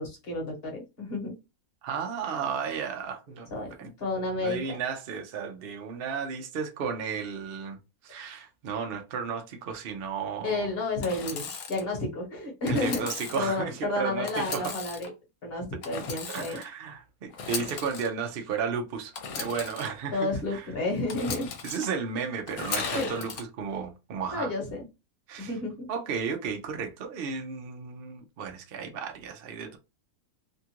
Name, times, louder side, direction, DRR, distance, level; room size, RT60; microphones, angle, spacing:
voice 1, 0.0-1.4 3.5-4.8 10.4-13.1 13.4-15.1 15.4-16.6 20.1-21.5 22.9-23.1 24.3-24.8 25.4-25.9, left 2 dB, 45° left, 1.2 m, -31 dB
voice 2, 1.8-3.9 4.4-7.8 8.0-10.7 12.7-14.8 16.3-20.7 21.6-24.5 25.3-25.5 25.9-29.8, right 6 dB, 65° right, 0.6 m, -34 dB
Engine / Sawing, 11.0-11.8 12.6-13.5 14.3-15.1 15.8-16.7 17.3-18.1 19.1-19.9 21.1-21.9 22.5-23.4, left 5 dB, 80° left, 1.2 m, -36 dB
2.8 x 2.4 x 2.8 m
omnidirectional pair, 1.5 m